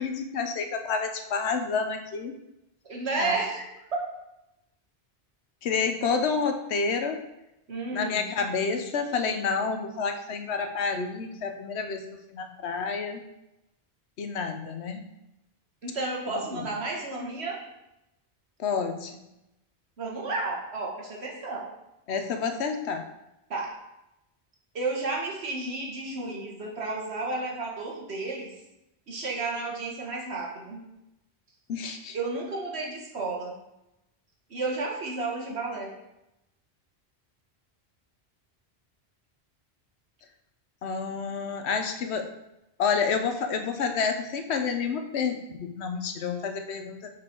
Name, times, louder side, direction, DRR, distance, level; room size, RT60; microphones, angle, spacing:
voice 1, 0.0-2.3 3.2-3.3 5.6-7.2 7.9-12.0 12.3-13.2 14.2-15.0 16.5-16.6 18.6-19.1 22.1-23.0 31.7-32.2 40.8-42.3 42.8-47.1, left 5 dB, 90° left, 6 dB, 1.0 m, -29 dB
voice 2, 2.8-3.7 7.7-8.3 15.8-17.6 20.0-21.7 23.5-23.7 24.7-28.5 29.1-30.8 32.1-33.5 34.5-35.9, right 3 dB, 80° right, -1 dB, 1.6 m, -32 dB
5.9 x 4.6 x 4.5 m, 0.90 s
omnidirectional pair, 1.1 m